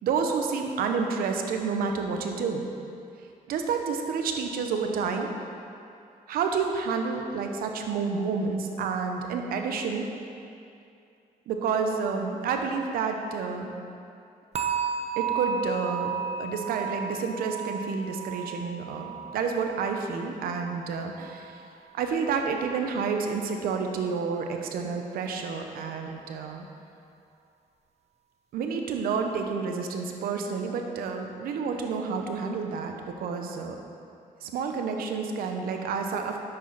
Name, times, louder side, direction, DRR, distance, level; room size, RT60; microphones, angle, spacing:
voice 1, 0.0-2.7 3.5-5.3 6.3-10.1 11.5-13.7 15.2-16.1 16.4-21.6 21.9-26.7 28.5-33.7 34.4-36.4, right 5 dB, 80° right, 4 dB, 0.9 m, -29 dB
sound 1, 14.5-21.6 21.9-22.3 22.8-22.9, right 7 dB, 45° right, 0.9 m, -34 dB
9.9 x 7.9 x 4.1 m, 2.6 s
supercardioid pair, 65°, 15 cm